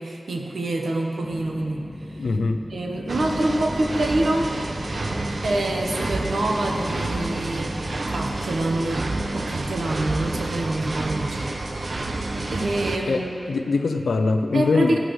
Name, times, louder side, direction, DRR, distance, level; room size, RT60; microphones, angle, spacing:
voice 1, 0.0-2.3 2.7-4.5 5.4-9.1 9.3-11.9 12.5-13.6 14.5-15.0, right 2 dB, 85° right, 1 dB, 1.2 m, -26 dB
sound 1, 1.2-8.0, left 1 dB, 15° left, 1.7 m, -38 dB
voice 2, 2.2-2.6 13.1-15.0, left 3 dB, 90° left, 6 dB, 0.5 m, -23 dB
sound 2, 3.1-13.0, right 2 dB, 60° right, 0.8 m, -29 dB
17.0 x 11.0 x 3.2 m, 3.0 s
cardioid pair, 50°, 0 cm